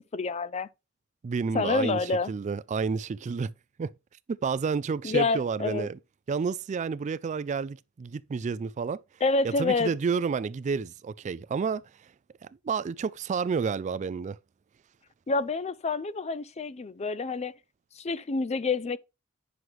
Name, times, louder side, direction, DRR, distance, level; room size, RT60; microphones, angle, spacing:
voice 1, 0.1-0.7 1.5-2.3 5.0-5.9 9.2-9.9 15.3-17.5 18.0-19.0, left 3 dB, 30° left, 0.5 m, -28 dB
voice 2, 1.2-3.5 3.8-3.9 4.3-6.0 6.3-9.0 9.4-12.1 12.4-14.4, right 5 dB, 35° right, 0.3 m, -30 dB
9.5 x 6.1 x 3.1 m
head